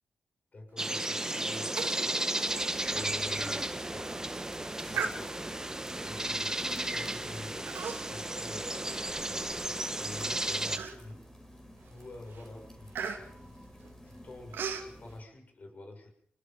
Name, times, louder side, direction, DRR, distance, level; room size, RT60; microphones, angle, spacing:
voice 1, 0.5-4.5 4.8-11.3 11.9-16.1, left 2 dB, 45° left, 3 dB, 7.0 m, -48 dB
sound 1, 0.8-10.8, right 1 dB, 15° right, 1.5 m, -34 dB
Human voice, 1.8-2.1 2.4-2.5 3.0-3.1 3.7-3.9 4.9-5.6 6.4-6.6 7.7-8.3 8.6-9.7 10.2-10.3 10.7-11.3 11.8-12.0 12.3-14.9, right 6 dB, 80° right, 2.9 m, -38 dB
sound 2, 2.5-15.2, equal, 15° left, 5.0 m, -52 dB
27.5 x 19.5 x 5.4 m, 0.64 s
supercardioid pair, 50°, 4 cm